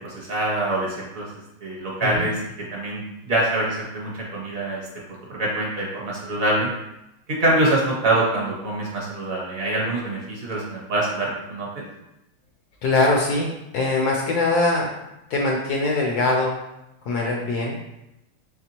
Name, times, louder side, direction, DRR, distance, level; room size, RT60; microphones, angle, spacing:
voice 1, 0.0-1.3 1.6-2.4 2.7-3.0 3.3-4.8 5.3-6.7 7.3-11.8, right 1 dB, 55° right, -4 dB, 1.2 m, -24 dB
voice 2, 12.8-14.9 15.3-16.6 17.0-17.8, left 2 dB, 70° left, -1 dB, 1.0 m, -22 dB
4.2 x 3.4 x 2.9 m, 0.90 s
omnidirectional pair, 2.0 m